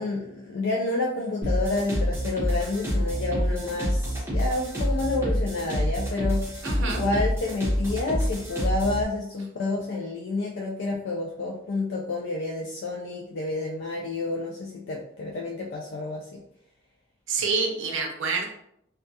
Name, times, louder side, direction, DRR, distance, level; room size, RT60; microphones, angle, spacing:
voice 1, 0.0-6.4 6.8-16.4, left 2 dB, 65° left, -2 dB, 0.3 m, -29 dB
sound 1, 1.4-9.0, equal, 10° right, 0.7 m, -27 dB
voice 2, 6.6-7.0 17.3-18.5, right 4 dB, 80° right, 2 dB, 0.5 m, -27 dB
2.2 x 2.2 x 2.7 m, 0.75 s
head